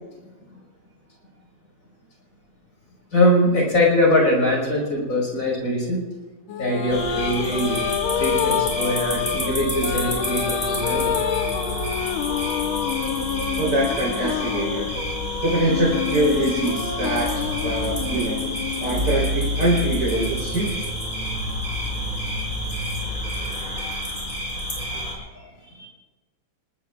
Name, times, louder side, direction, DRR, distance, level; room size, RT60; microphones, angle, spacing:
voice 1, 3.1-6.0 6.6-7.8 8.1-11.1 25.3-25.9, left 1 dB, 45° left, -2 dB, 6.1 m, -22 dB
sound 1, 6.5-20.1, left 8 dB, 85° left, 1.7 m, -27 dB
sound 2, 6.9-25.1, equal, 25° left, 5.8 m, -30 dB
voice 2, 13.6-15.0 15.4-18.5 18.8-20.9, right 1 dB, 55° right, -6 dB, 4.6 m, -24 dB
sound 3, 17.2-23.5, right 1 dB, 30° right, 1.8 m, -31 dB
29.0 x 19.5 x 2.5 m, 1.2 s
omnidirectional pair, 2.2 m